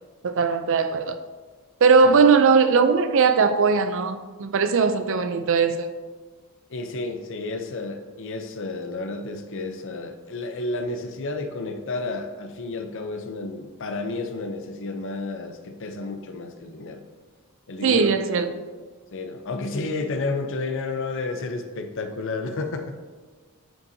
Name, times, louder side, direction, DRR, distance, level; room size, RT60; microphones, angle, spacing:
voice 1, 0.2-1.2 1.8-5.9 17.8-18.5, right 5 dB, 60° right, 0.5 m, -19 dB
voice 2, 6.7-17.0 17.7-18.1 19.1-22.9, left 3 dB, 60° left, 0.7 m, -31 dB
9.1 x 5.5 x 2.8 m
head